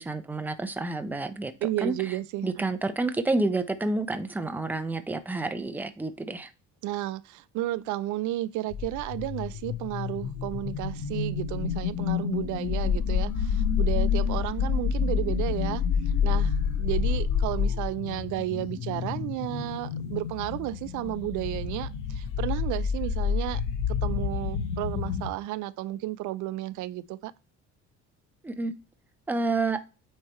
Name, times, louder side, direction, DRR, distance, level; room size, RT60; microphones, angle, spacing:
voice 1, 0.0-1.5 1.8-1.9 2.4-6.5 28.4-28.7 29.3-29.8, right 2 dB, 5° right, 0.6 m, -29 dB
voice 2, 1.6-2.7 6.8-15.8 16.2-23.6 23.9-27.3, right 15 dB, 80° right, 0.5 m, -32 dB
sound 1, 8.7-25.3, left 7 dB, 85° left, 1.2 m, -28 dB
8.9 x 3.3 x 4.3 m
cardioid pair, 150°, 30 cm